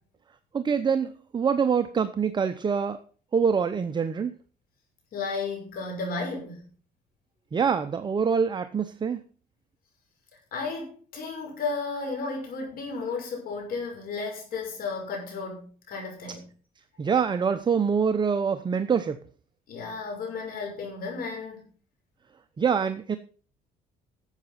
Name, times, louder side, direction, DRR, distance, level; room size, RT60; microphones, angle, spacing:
voice 1, 0.5-3.0 3.3-4.3 7.5-9.2 17.0-19.2 22.6-23.2, right 6 dB, 25° right, 10 dB, 0.7 m, -25 dB
voice 2, 5.1-6.6 10.5-16.4 19.7-21.6, left 4 dB, 60° left, 2 dB, 6.1 m, -33 dB
12.0 x 7.8 x 5.7 m, 0.42 s
cardioid pair, 110°, 17 cm